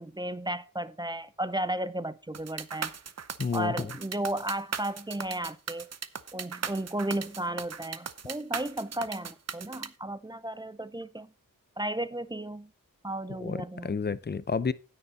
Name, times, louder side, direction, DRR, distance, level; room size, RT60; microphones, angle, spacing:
voice 1, 0.0-2.9 3.5-5.9 6.3-11.3 11.8-12.7 13.0-14.0, right 1 dB, 15° right, 0.5 m, -34 dB
sound 1, 2.3-9.9, right 6 dB, 50° right, 0.8 m, -37 dB
voice 2, 3.4-3.9 13.4-14.7, left 5 dB, 30° left, 0.6 m, -30 dB
9.9 x 9.4 x 4.1 m
wide cardioid pair, 110°, 34 cm